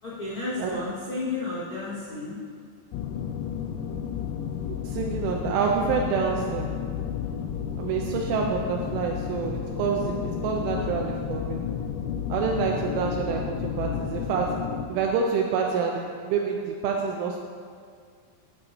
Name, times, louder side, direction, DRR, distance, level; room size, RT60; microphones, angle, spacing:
voice 1, 0.0-2.4 10.5-10.9 12.7-13.1, left 3 dB, 70° left, -10 dB, 1.2 m, -33 dB
sound 1, 2.9-14.9, left 8 dB, 90° left, 3.2 m, -32 dB
voice 2, 4.8-6.8 7.8-11.6 12.3-14.6 14.9-17.4, right 6 dB, 85° right, 0 dB, 3.1 m, -27 dB
13.5 x 9.0 x 2.8 m, 2.1 s
omnidirectional pair, 5.7 m